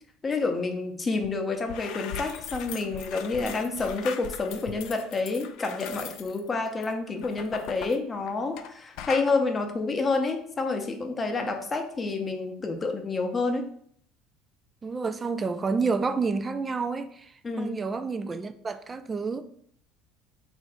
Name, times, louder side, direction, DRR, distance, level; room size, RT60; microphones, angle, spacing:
voice 1, 0.2-13.7 17.4-17.8, left 3 dB, 25° left, 0.6 m, -29 dB
sound 1, 1.2-1.3 1.6-8.7 9.0-9.3, left 8 dB, 70° left, 0.3 m, -39 dB
voice 2, 14.8-17.3 17.6-19.4, right 4 dB, 25° right, 0.3 m, -29 dB
3.1 x 2.5 x 3.7 m
supercardioid pair, 95°, 0 cm